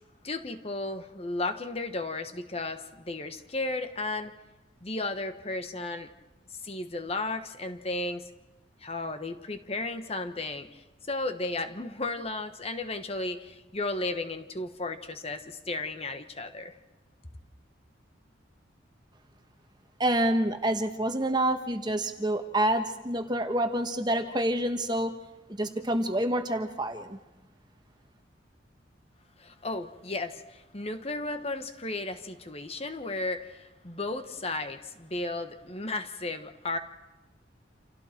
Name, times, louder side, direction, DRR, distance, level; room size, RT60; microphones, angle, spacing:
voice 1, 0.2-4.3 4.8-6.1 6.6-8.2 8.8-16.7 29.4-36.8, left 2 dB, 35° left, 8 dB, 1.3 m, -34 dB
voice 2, 20.0-25.1 25.5-27.2, right 1 dB, 20° right, 6 dB, 1.4 m, -27 dB
29.0 x 28.0 x 4.5 m, 1.1 s
head